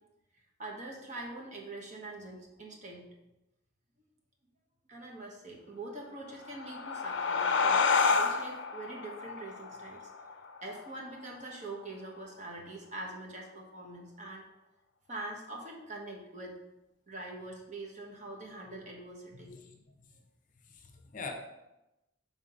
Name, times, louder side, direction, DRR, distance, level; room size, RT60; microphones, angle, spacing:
voice 1, 0.6-3.1 4.9-14.5 15.1-16.6 17.1-19.5, right 2 dB, 40° right, 0 dB, 1.1 m, -44 dB
sound 1, 6.3-11.5, left 4 dB, 75° left, 0.5 m, -30 dB
voice 2, 19.3-19.8 20.6-21.3, left 4 dB, 45° left, 4 dB, 0.7 m, -44 dB
5.6 x 3.5 x 5.2 m, 0.94 s
head